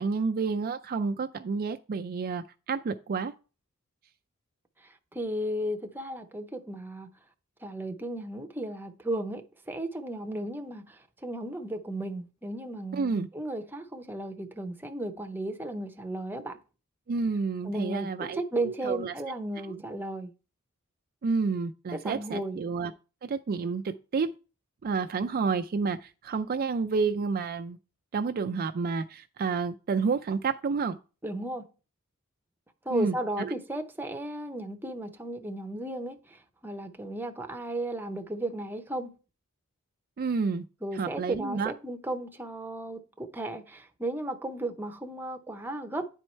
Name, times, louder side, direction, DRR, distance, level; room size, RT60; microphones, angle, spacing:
voice 1, 0.0-3.3 12.9-13.3 17.1-19.1 19.7-19.8 21.2-22.9 23.2-24.3 24.8-27.8 28.1-31.0 32.9-33.5 40.2-40.6 40.9-41.7, right 4 dB, 45° right, 0.4 m, -30 dB
voice 2, 4.8-7.1 7.6-16.6 17.6-20.3 21.9-22.6 31.2-31.7 32.8-39.1 40.8-46.1, right 1 dB, 10° right, 0.7 m, -35 dB
9.9 x 4.5 x 4.3 m
head